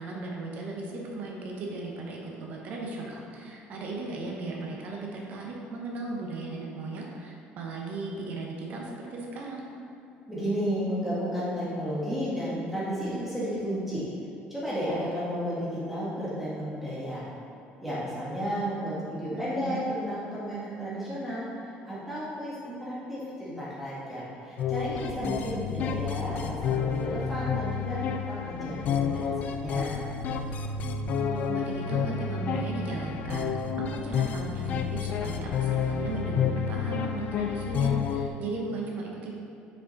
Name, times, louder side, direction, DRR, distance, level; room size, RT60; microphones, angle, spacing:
voice 1, 0.0-9.6 19.3-20.0 31.2-33.6 33.9-39.3, right 3 dB, 45° right, -1 dB, 1.0 m, -36 dB
voice 2, 10.3-14.0 14.5-17.2 17.8-21.4 21.9-28.0 28.3-30.0, equal, 5° right, -9 dB, 1.3 m, -32 dB
sound 1, 24.6-38.3, left 7 dB, 45° left, 0.4 m, -30 dB
6.0 x 4.9 x 4.0 m, 2.8 s
cardioid pair, 160°, 4 cm